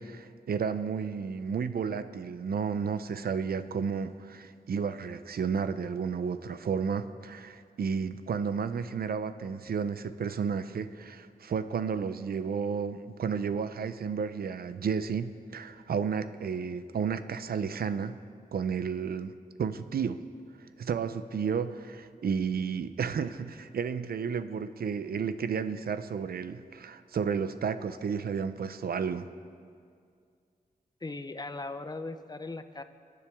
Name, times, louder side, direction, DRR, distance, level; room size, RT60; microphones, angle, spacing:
voice 1, 0.0-18.2 18.5-20.2 20.8-29.3, right 6 dB, 85° right, 12 dB, 0.6 m, -32 dB
voice 2, 31.0-32.8, left 2 dB, 25° left, 9 dB, 0.8 m, -38 dB
26.5 x 10.0 x 3.6 m, 2.2 s
wide cardioid pair, 90°, 15 cm